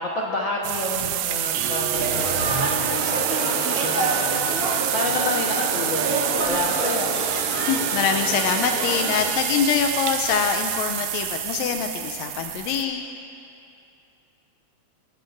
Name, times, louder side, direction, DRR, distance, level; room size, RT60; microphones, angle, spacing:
voice 1, 0.0-7.1, left 2 dB, 55° left, -3 dB, 1.5 m, -30 dB
sound 1, 0.6-12.8, right 12 dB, 85° right, 1.9 m, -27 dB
sound 2, 1.5-3.3, right 4 dB, 65° right, 1.3 m, -32 dB
sound 3, 1.9-9.3, right 1 dB, 30° right, 2.5 m, -28 dB
voice 2, 7.7-13.1, left 7 dB, 80° left, 4 dB, 1.8 m, -24 dB
28.5 x 13.0 x 2.6 m, 2.6 s
omnidirectional pair, 3.3 m